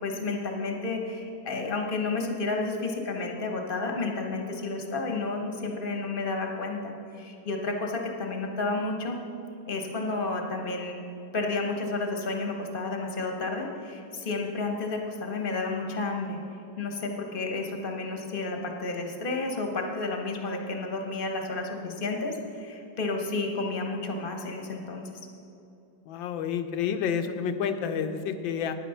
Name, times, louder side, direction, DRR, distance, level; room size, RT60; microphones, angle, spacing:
voice 1, 0.0-9.2 9.7-11.0 11.3-16.4 16.8-25.1, left 3 dB, 35° left, 3 dB, 1.0 m, -31 dB
voice 2, 26.1-28.7, left 7 dB, 80° left, 9 dB, 1.4 m, -29 dB
10.0 x 9.2 x 5.6 m, 2.7 s
omnidirectional pair, 2.1 m